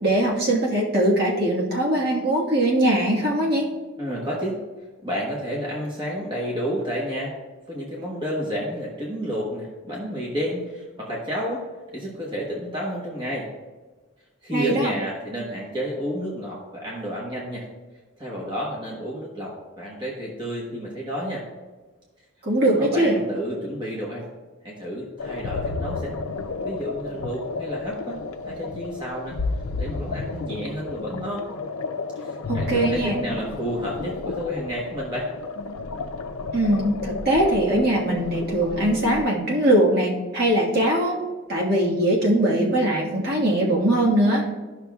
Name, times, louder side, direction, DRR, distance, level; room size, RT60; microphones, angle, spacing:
voice 1, 0.0-3.7 14.5-14.9 22.4-23.2 32.5-33.2 36.5-41.2 41.5-44.4, right 1 dB, 45° right, -4 dB, 1.4 m, -21 dB
voice 2, 4.0-4.6 5.0-7.3 7.7-11.6 11.9-13.5 14.4-17.7 18.2-21.4 22.6-24.3 24.6-26.1 26.6-28.2 28.4-29.4 29.8-31.5 32.2-35.3, equal, 20° right, -4 dB, 1.1 m, -30 dB
sound 1, 25.2-39.2, left 3 dB, 85° left, 0.5 m, -32 dB
12.5 x 6.0 x 2.3 m, 1.3 s
head